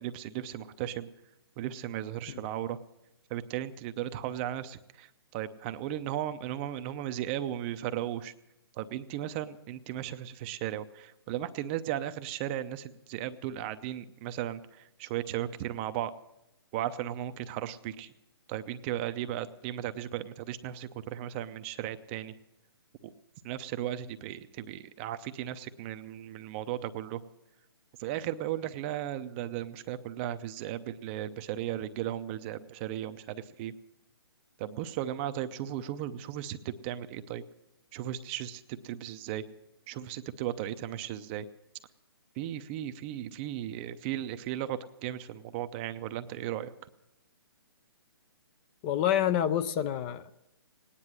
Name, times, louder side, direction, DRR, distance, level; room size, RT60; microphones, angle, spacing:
voice 1, 0.0-1.1 1.6-2.8 3.3-8.3 8.8-16.1 16.7-18.1 18.5-22.3 23.0-23.1 23.4-27.2 28.0-33.7 34.6-37.4 37.9-39.4 39.9-41.5 42.4-46.7, right 12 dB, 25° right, 11 dB, 0.6 m, -36 dB
voice 2, 48.8-50.3, left 10 dB, 25° left, 11 dB, 0.5 m, -28 dB
18.0 x 9.9 x 7.5 m, 0.89 s
hypercardioid pair, 140°, 13 cm